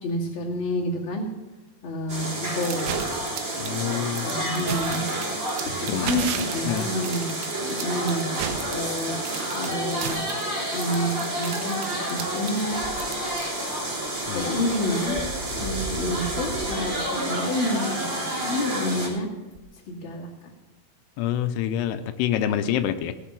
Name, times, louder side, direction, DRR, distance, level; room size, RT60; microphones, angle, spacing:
voice 1, 0.0-1.3 1.8-2.9 4.2-5.0 6.0-7.3 7.8-8.3 8.7-9.2 9.5-10.2 10.7-12.8 14.3-15.2 15.5-19.3 19.9-20.3, left 1 dB, 35° left, -3 dB, 2.9 m, -29 dB
sound 1, 2.1-19.1, right 1 dB, 35° right, 4.1 m, -30 dB
sound 2, 2.6-13.8, right 8 dB, 85° right, 3.1 m, -34 dB
voice 2, 3.6-4.3 5.9-6.4 6.7-6.9 14.3-14.6 21.2-23.1, left 10 dB, 90° left, 9 dB, 2.7 m, -27 dB
sound 3, 12.7-17.2 18.0-18.1 19.5-19.6, left 1 dB, 50° left, 1.1 m, -38 dB
17.5 x 7.2 x 6.0 m, 1.1 s
omnidirectional pair, 4.6 m